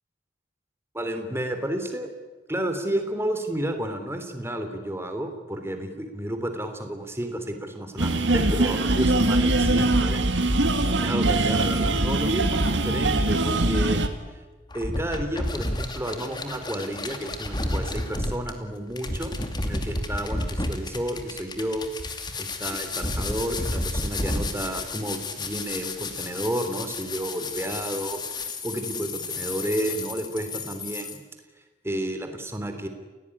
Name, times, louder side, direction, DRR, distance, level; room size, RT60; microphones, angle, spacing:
voice 1, 0.9-2.1 2.5-10.2 10.5-10.6 11.0-14.0 14.3-14.4 14.7-21.9 22.4-28.2 28.6-31.2 31.8-32.9, right 1 dB, 15° right, 7 dB, 3.2 m, -31 dB
sound 1, 8.0-14.1, right 2 dB, 70° right, 2.2 m, -22 dB
sound 2, 14.7-31.2, left 2 dB, 25° left, 2.5 m, -31 dB
30.0 x 17.5 x 9.9 m, 1.3 s
head